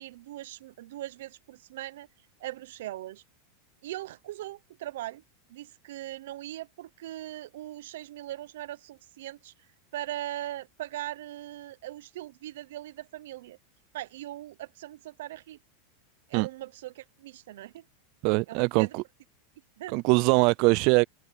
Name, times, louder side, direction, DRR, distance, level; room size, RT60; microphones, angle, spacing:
voice 1, 0.0-2.1 2.4-3.2 3.8-5.2 5.5-9.5 9.9-13.6 13.9-15.6 16.3-17.9 18.5-18.9 19.8-20.0, right 14 dB, 75° right, 0.8 m, -40 dB
voice 2, 18.2-19.0 19.9-21.0, right 28 dB, 55° right, 0.3 m, -22 dB
supercardioid pair, 125°, 0 cm